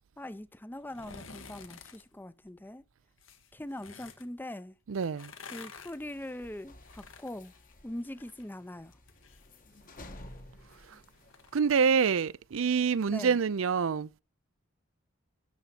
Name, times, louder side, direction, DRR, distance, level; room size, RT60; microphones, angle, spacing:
voice 1, 0.2-2.8 3.5-4.8 5.5-7.5 7.8-9.0 13.1-13.4, left 1 dB, 10° left, 0.6 m, -42 dB
sound 1, 0.8-2.0 3.2-4.3 5.0-8.5 8.8-12.2 12.5-12.6, left 5 dB, 70° left, 1.5 m, -51 dB
voice 2, 4.9-5.3 11.5-14.1, right 6 dB, 75° right, 0.5 m, -26 dB
sound 2, 5.7-11.7, left 1 dB, 45° left, 1.3 m, -53 dB
12.5 x 4.2 x 7.7 m
head